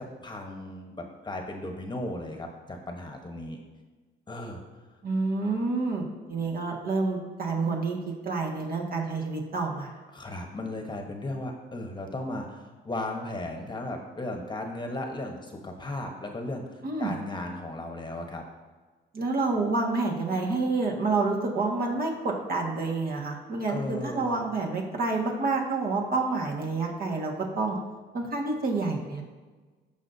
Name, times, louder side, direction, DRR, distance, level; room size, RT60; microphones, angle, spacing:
voice 1, 0.0-3.6 4.3-4.6 10.1-18.4 23.7-24.4, left 1 dB, 20° left, 3 dB, 1.2 m, -36 dB
voice 2, 5.0-8.0 8.2-9.9 16.8-17.1 19.1-27.8 28.1-29.2, right 3 dB, 50° right, -1 dB, 1.8 m, -28 dB
15.0 x 5.5 x 2.8 m, 1.3 s
cardioid pair, 90°, 20 cm